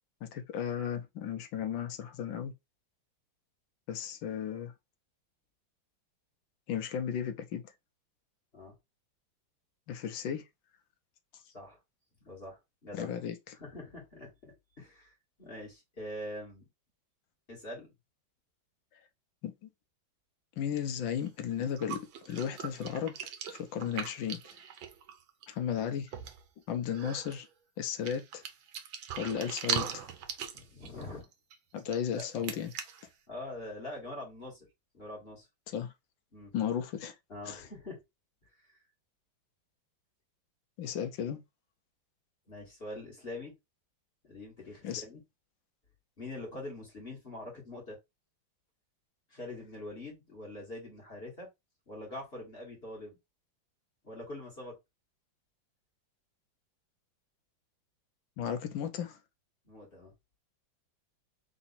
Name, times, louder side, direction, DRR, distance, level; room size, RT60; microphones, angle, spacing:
voice 1, 0.2-2.5 3.9-4.7 6.7-7.6 9.9-10.4 12.9-13.6 19.4-19.5 20.6-23.1 23.5-24.4 25.5-26.1 26.7-27.5 27.8-28.4 29.2-30.1 31.7-32.7 35.7-35.9 36.5-37.1 37.5-37.6 40.8-41.4 44.8-45.0 58.4-59.2, left 8 dB, 70° left, 1.4 m, -34 dB
voice 2, 12.2-13.1 13.5-16.6 17.5-17.9 30.5-31.3 31.9-32.5 33.3-34.7 34.9-35.5 36.3-36.5 37.3-38.0 38.6-38.8 42.5-43.5 44.2-45.2 46.2-48.0 49.3-51.5 51.9-53.2 54.0-54.8 59.7-60.1, left 1 dB, 30° left, 1.8 m, -44 dB
sound 1, 21.2-21.3 21.6-25.5 25.8-25.9 26.1-26.5 26.9-27.4 28.0-33.0, right 8 dB, 75° right, 1.5 m, -39 dB
4.0 x 2.8 x 4.1 m
omnidirectional pair, 2.2 m